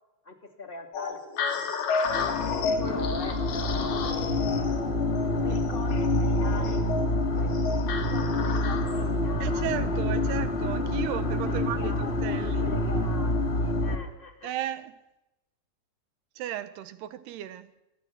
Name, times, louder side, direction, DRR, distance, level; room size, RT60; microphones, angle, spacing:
voice 1, 0.2-4.2 5.4-10.4 11.5-14.5, left 2 dB, 15° left, 2.3 m, -41 dB
sound 1, 0.9-9.1, left 5 dB, 70° left, 4.5 m, -33 dB
sound 2, 2.0-14.0, left 1 dB, 40° left, 0.9 m, -27 dB
voice 2, 9.4-12.7 14.4-15.0 16.4-17.7, right 12 dB, 80° right, 3.1 m, -35 dB
24.0 x 23.0 x 6.0 m
omnidirectional pair, 4.8 m